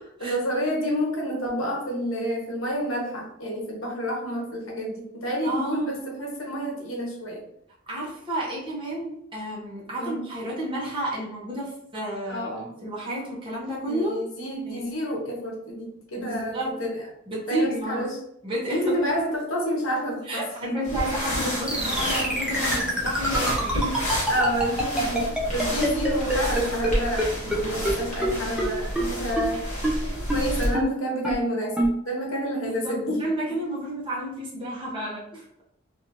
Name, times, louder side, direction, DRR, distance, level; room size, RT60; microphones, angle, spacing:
voice 1, 0.2-7.4 10.0-10.2 12.3-12.7 13.9-17.0 17.5-18.1 18.7-20.4 20.7-20.8 24.3-29.6 30.3-33.2, equal, 70° left, -1 dB, 1.0 m, -29 dB
voice 2, 5.4-6.0 7.9-12.5 12.8-14.1 14.7-14.8 16.2-16.8 17.3-18.1 18.4-19.1 20.2-24.1 32.6-35.5, right 1 dB, 25° right, -5 dB, 0.9 m, -31 dB
sound 1, 20.8-30.7, equal, 35° left, 1.3 m, -30 dB
sound 2, 21.7-26.9 27.2-27.3 27.5-27.6 27.8-27.9 28.2-28.3 28.6-28.7 29.0-29.1 29.4-29.5 29.8-29.9 30.3-30.4 30.7-30.8 31.2-31.3 31.8-31.9, right 1 dB, 5° right, 0.6 m, -24 dB
3.0 x 2.6 x 2.6 m, 0.74 s
head